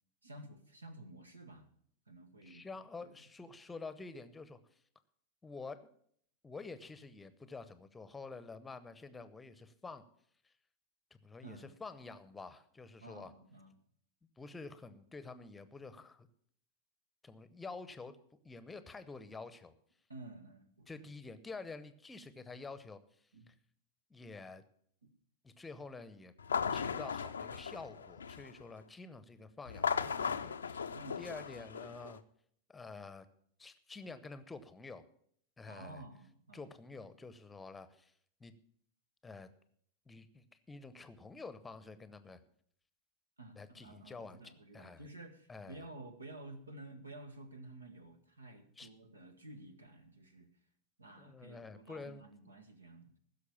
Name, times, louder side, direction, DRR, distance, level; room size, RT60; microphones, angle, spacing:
voice 1, 0.2-1.7 2.1-2.6 3.0-3.1 11.4-11.7 13.0-13.7 20.1-21.1 23.3-23.5 25.0-25.1 30.9-31.4 35.6-36.7 43.4-50.5 51.0-53.2, right 1 dB, 80° right, 8 dB, 1.5 m, -52 dB
voice 2, 2.4-4.6 5.4-5.9 6.4-10.0 10.4-10.5 11.2-13.3 14.4-16.3 17.2-18.2 18.4-19.7 20.9-23.5 24.1-24.6 25.4-26.3 26.7-32.2 32.7-33.3 33.6-35.0 35.6-36.0 36.5-38.1 38.4-38.5 39.2-39.5 40.1-42.4 43.5-44.4 44.7-45.1 45.5-45.8 48.8-48.9 51.2-52.2, left 4 dB, 10° left, 13 dB, 0.9 m, -49 dB
sound 1, 26.4-28.6 29.7-32.2, left 6 dB, 70° left, 0.6 m, -37 dB
16.0 x 6.6 x 7.1 m, 0.64 s
figure-of-eight pair, 90°, 0 cm